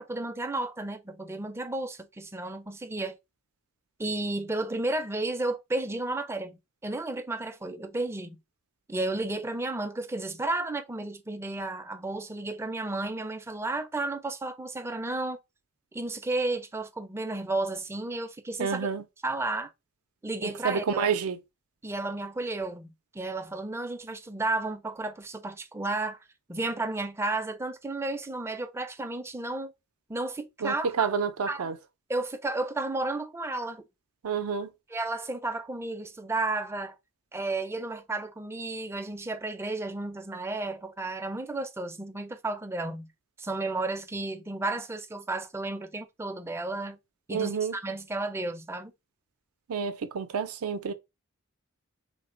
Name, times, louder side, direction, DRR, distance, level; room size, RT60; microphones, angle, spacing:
voice 1, 0.0-3.2 4.0-8.4 8.9-15.4 15.9-18.9 19.2-19.7 20.2-21.1 21.8-26.2 26.5-29.7 30.1-31.1 31.5-31.7 32.1-33.8 34.9-37.0 37.3-43.1 43.4-47.0 47.3-48.9, right 2 dB, 10° right, 0.4 m, -32 dB
voice 2, 18.6-19.0 20.4-21.4 30.6-31.8 34.2-34.7 47.3-47.8 49.7-50.9, right 6 dB, 80° right, 0.5 m, -29 dB
3.3 x 2.1 x 3.7 m
head